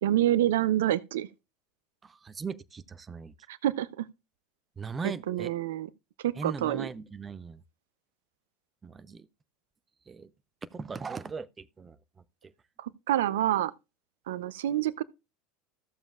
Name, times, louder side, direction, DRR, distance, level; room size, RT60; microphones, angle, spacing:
voice 1, 0.0-1.3 3.5-4.1 5.3-5.9 6.2-6.9 12.8-13.7 14.3-15.0, right 13 dB, 70° right, 0.6 m, -27 dB
voice 2, 2.0-3.3 4.8-5.5 6.4-7.6 8.8-9.3 10.1-10.3 10.7-12.0 12.4-12.5, right 5 dB, 25° right, 0.6 m, -39 dB
15.0 x 7.1 x 2.3 m
figure-of-eight pair, 75°, 0 cm